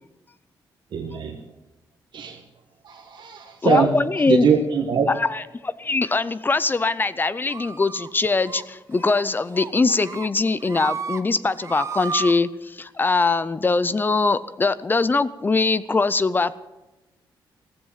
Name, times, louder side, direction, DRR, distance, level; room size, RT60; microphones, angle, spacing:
voice 1, 0.9-1.4 2.1-2.4 2.8-3.9 4.3-5.1, right 6 dB, 70° right, 1 dB, 1.5 m, -22 dB
voice 2, 3.6-4.5 5.1-16.6, left 3 dB, 25° left, 16 dB, 0.6 m, -22 dB
sound 1, 7.5-8.1 8.4-8.6 9.0-9.2 9.5-10.3 10.6-11.2 11.5-12.3, right 5 dB, 35° right, 1.0 m, -33 dB
15.5 x 15.0 x 5.7 m, 1.0 s
cardioid pair, 125°, 8 cm